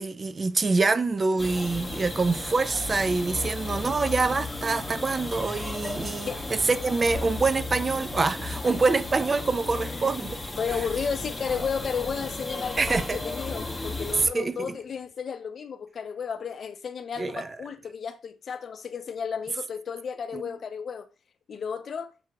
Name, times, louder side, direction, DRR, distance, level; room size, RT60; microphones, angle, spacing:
voice 1, 0.0-10.4 12.8-13.2 14.3-14.7 17.2-17.5 20.3-20.4, right 3 dB, 30° right, 0.4 m, -25 dB
sound 1, 1.4-14.3, left 2 dB, 15° left, 0.9 m, -34 dB
voice 2, 9.9-21.1 21.5-22.1, left 6 dB, 50° left, 0.6 m, -33 dB
6.7 x 2.9 x 2.3 m
cardioid pair, 90°, 0 cm